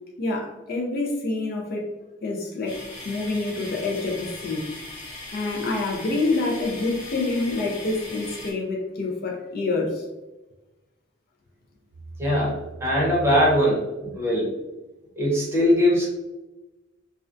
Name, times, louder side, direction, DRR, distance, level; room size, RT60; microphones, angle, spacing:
voice 1, 0.2-1.9 2.2-2.8 3.0-4.7 5.3-10.0, left 2 dB, 50° left, -1 dB, 0.4 m, -27 dB
sound 1, 2.7-8.5, left 2 dB, 85° left, 0.9 m, -39 dB
voice 2, 12.2-14.6 15.2-16.1, equal, 15° right, -6 dB, 0.8 m, -21 dB
2.4 x 2.1 x 2.4 m, 1.1 s
head